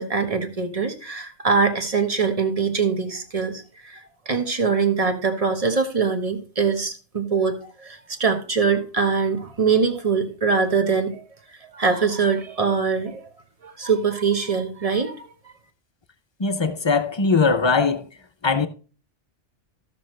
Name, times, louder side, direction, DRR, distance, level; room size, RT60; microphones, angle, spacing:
voice 1, 0.0-4.0 4.3-11.2 11.7-13.3 13.6-15.3, right 5 dB, 30° right, 1.2 m, -23 dB
voice 2, 16.4-18.0 18.4-18.7, left 4 dB, 40° left, 0.4 m, -20 dB
14.5 x 6.2 x 3.2 m
omnidirectional pair, 1.2 m